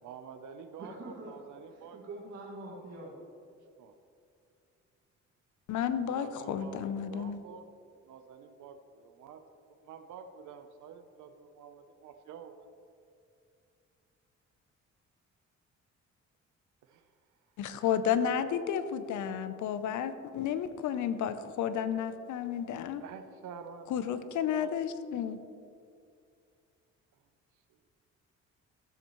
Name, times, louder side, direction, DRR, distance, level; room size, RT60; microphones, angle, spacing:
voice 1, 0.0-2.0 3.8-3.9 6.1-7.7 8.0-9.4 9.8-12.7 16.9-17.0 23.0-24.7, right 6 dB, 75° right, 7 dB, 0.7 m, -48 dB
voice 2, 0.8-1.3 1.7-3.2, right 2 dB, 60° right, -5 dB, 2.0 m, -44 dB
voice 3, 5.7-7.4 17.6-23.0 23.9-25.4, left 8 dB, 75° left, 11 dB, 0.7 m, -32 dB
14.5 x 7.2 x 3.1 m, 2.5 s
cardioid pair, 90°, 30 cm